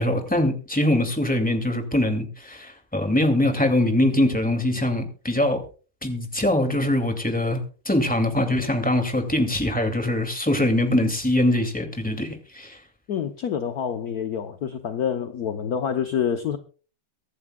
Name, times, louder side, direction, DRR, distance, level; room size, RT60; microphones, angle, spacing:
voice 1, 0.0-5.6 6.0-7.6 7.9-12.8, left 1 dB, 5° left, 2.3 m, -23 dB
voice 2, 13.1-16.6, left 8 dB, 60° left, 1.2 m, -27 dB
24.0 x 11.0 x 2.3 m
omnidirectional pair, 2.2 m